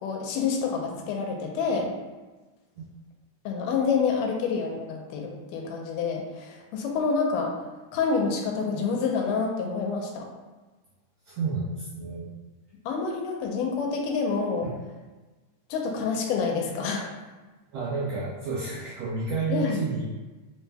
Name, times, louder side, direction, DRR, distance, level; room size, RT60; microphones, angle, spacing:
voice 1, 0.0-1.9 3.5-7.6 7.9-10.3 12.9-14.7 15.7-17.1 19.5-19.8, left 5 dB, 85° left, 1 dB, 2.2 m, -27 dB
voice 2, 11.3-12.3 14.6-14.8 17.7-20.1, right 4 dB, 80° right, -7 dB, 1.5 m, -30 dB
5.1 x 2.1 x 3.3 m, 1.2 s
omnidirectional pair, 3.7 m